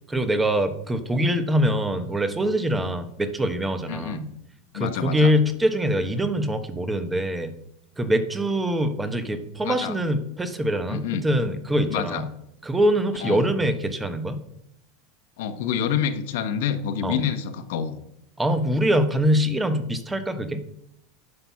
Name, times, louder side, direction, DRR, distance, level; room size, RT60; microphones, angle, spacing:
voice 1, 0.1-4.3 4.7-7.5 8.0-12.3 12.6-14.4 17.0-17.2 18.4-20.6, equal, 10° right, 10 dB, 1.1 m, -24 dB
voice 2, 3.9-4.3 4.7-5.3 9.6-9.9 10.9-11.3 11.9-12.2 13.2-13.5 15.4-18.0, left 8 dB, 75° left, 8 dB, 1.1 m, -27 dB
9.9 x 5.9 x 5.8 m, 0.79 s
supercardioid pair, 125°, 0 cm